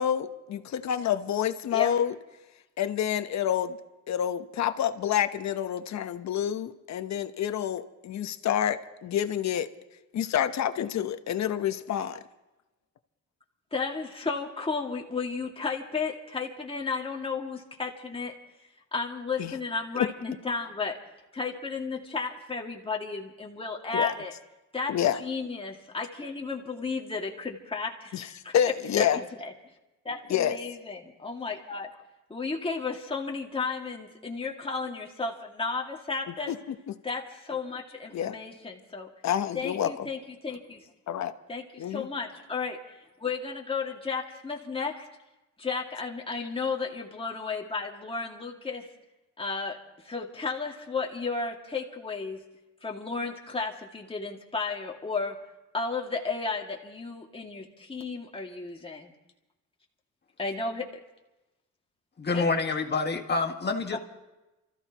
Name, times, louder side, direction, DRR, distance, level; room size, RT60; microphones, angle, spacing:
voice 1, 0.0-2.1 2.8-3.8 4.1-9.7 10.1-12.2 19.4-19.5 23.9-24.1 24.9-25.2 28.1-28.3 28.5-29.2 30.3-30.6 36.5-36.7 38.1-38.3 39.2-40.0 41.1-41.3 41.8-42.1, left 10 dB, 65° left, 9 dB, 1.1 m, -28 dB
voice 2, 13.7-18.3 18.9-21.0 21.3-24.3 24.7-28.5 29.0-29.5 30.0-31.9 32.3-36.5 37.0-39.1 39.5-40.9 41.5-45.1 45.6-48.9 49.4-49.8 50.0-52.4 52.8-55.4 55.7-59.1 60.4-60.9 62.3-62.4 63.9-64.0, left 4 dB, 20° left, -1 dB, 2.3 m, -33 dB
voice 3, 62.2-64.0, left 3 dB, 35° left, 3 dB, 1.8 m, -27 dB
29.0 x 14.5 x 3.0 m, 1.0 s
cardioid pair, 90°, 30 cm